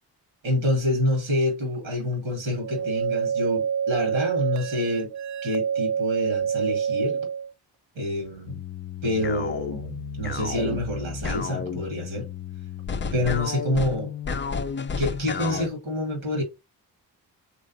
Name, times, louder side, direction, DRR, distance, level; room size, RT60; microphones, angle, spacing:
voice 1, 0.4-5.1 5.4-7.3 8.0-8.6 9.0-12.3 13.1-14.1 15.0-16.4, left 1 dB, 85° right, 1.8 m, -27 dB
sound 1, 2.6-7.5, right 7 dB, 40° right, 0.4 m, -27 dB
sound 2, 8.5-15.7, left 5 dB, 25° left, 0.5 m, -32 dB
3.9 x 3.2 x 4.1 m
hypercardioid pair, 40°, 47 cm